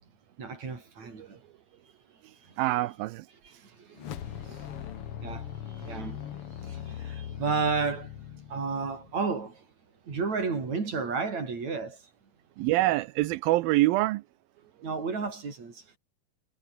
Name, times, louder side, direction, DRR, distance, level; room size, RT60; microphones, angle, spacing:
voice 1, 0.4-1.4 2.4-2.6 3.4-8.1 8.5-9.7 10.1-12.0 14.8-16.0, right 4 dB, 45° right, 6.0 m, -33 dB
voice 2, 2.6-3.3 12.6-14.2, right 17 dB, 80° right, 2.4 m, -25 dB
sound 1, 3.9-9.3, left 10 dB, 60° left, 1.5 m, -40 dB
omnidirectional pair, 4.4 m